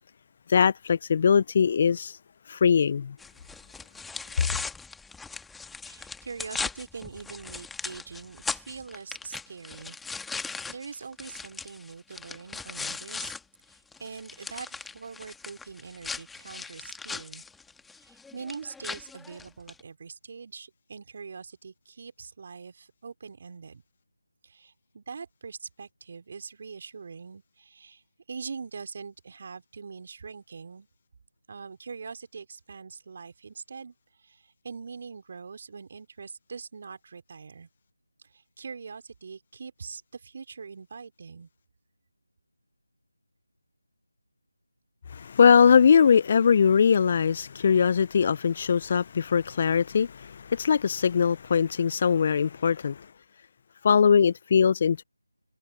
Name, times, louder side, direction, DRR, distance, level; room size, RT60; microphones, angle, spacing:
voice 1, 0.5-2.2 2.5-3.1 45.1-53.1 53.8-55.0, left 6 dB, 30° left, 0.5 m, -21 dB
sound 1, 3.2-13.4 13.7-19.8, left 4 dB, 5° left, 1.6 m, -38 dB
voice 2, 5.9-10.0 10.7-13.3 14.0-17.4 18.0-23.8 24.4-28.0 28.3-30.9 31.5-33.9 34.2-37.7 38.3-41.5, right 5 dB, 40° right, 3.2 m, -43 dB
figure-of-eight pair, 160°, 0 cm